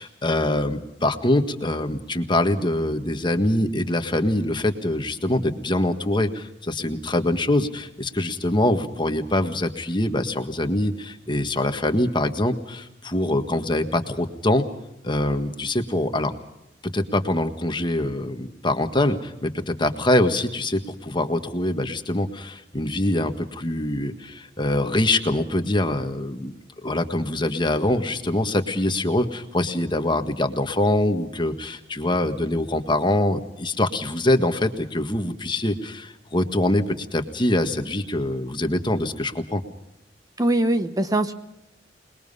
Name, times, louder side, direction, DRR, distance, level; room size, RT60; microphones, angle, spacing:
voice 1, 0.0-14.7 15.0-16.3 16.8-26.5 26.8-39.6, left 1 dB, 25° left, 7 dB, 1.7 m, -24 dB
voice 2, 40.4-41.3, right 1 dB, 20° right, 9 dB, 0.9 m, -22 dB
27.5 x 21.5 x 5.5 m, 0.87 s
head